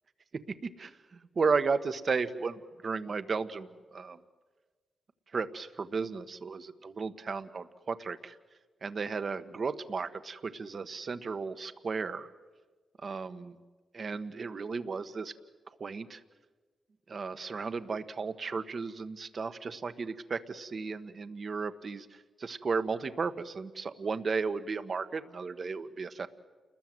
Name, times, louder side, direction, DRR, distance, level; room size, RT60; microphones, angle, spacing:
voice 1, 0.8-4.2 5.3-8.4 8.8-12.3 13.0-13.6 13.9-15.3 15.8-16.2 17.1-26.3, right 4 dB, 50° right, 11 dB, 1.4 m, -34 dB
29.0 x 21.0 x 8.0 m, 1.4 s
cardioid pair, 65°, 0 cm